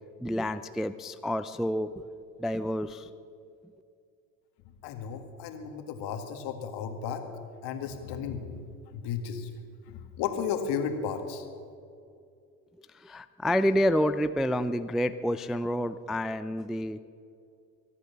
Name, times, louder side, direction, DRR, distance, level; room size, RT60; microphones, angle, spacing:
voice 1, 0.2-2.0 2.4-3.1 12.9-17.0, equal, ahead, 12 dB, 0.3 m, -28 dB
voice 2, 4.8-7.2 7.6-8.4 8.9-9.5 10.2-11.4, left 7 dB, 60° left, 6 dB, 2.1 m, -33 dB
23.5 x 8.5 x 7.1 m, 2.4 s
hypercardioid pair, 70°, 44 cm